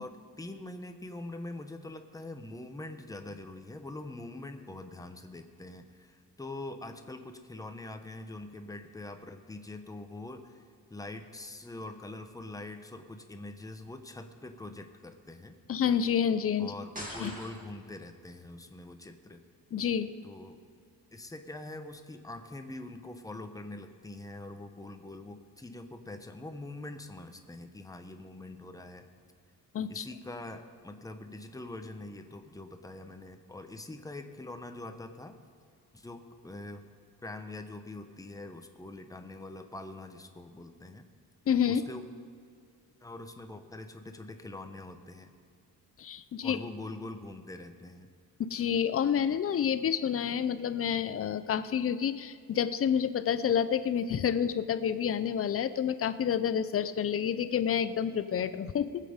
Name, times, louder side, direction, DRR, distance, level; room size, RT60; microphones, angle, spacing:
voice 1, 0.0-10.6 10.9-15.5 16.6-19.4 20.2-20.6 21.1-29.1 29.9-35.4 35.9-36.8 37.2-41.1 41.7-42.0 43.0-45.3 46.4-48.1, left 2 dB, 10° left, 7 dB, 0.8 m, -44 dB
voice 2, 15.7-16.7 17.2-17.3 19.7-20.1 29.7-30.0 41.5-41.8 46.0-46.6 48.4-59.0, left 8 dB, 40° left, 12 dB, 0.6 m, -29 dB
sound 1, 16.9-17.9, equal, 25° right, 3.0 m, -42 dB
19.5 x 7.5 x 5.1 m, 2.2 s
cardioid pair, 130°, 35 cm